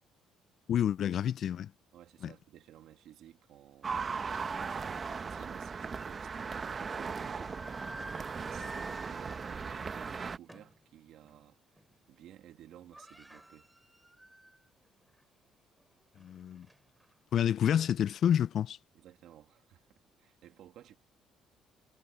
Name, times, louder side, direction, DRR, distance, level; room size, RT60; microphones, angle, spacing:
voice 1, 0.7-1.7 2.2-2.3 16.2-16.7 17.3-18.8, left 9 dB, 55° left, 0.4 m, -29 dB
voice 2, 1.9-7.5 8.2-11.6 12.1-13.7 18.9-19.9 20.2-21.0, right 12 dB, 70° right, 2.1 m, -56 dB
sound 1, 3.8-10.4, right 5 dB, 35° right, 1.0 m, -38 dB
sound 2, 6.0-6.1 7.0-10.8 11.2-11.4 11.8-12.2 12.4-12.5 12.7-14.7 15.1-15.2 15.8-17.1, right 1 dB, 5° right, 4.1 m, -51 dB
cardioid pair, 110°, 0 cm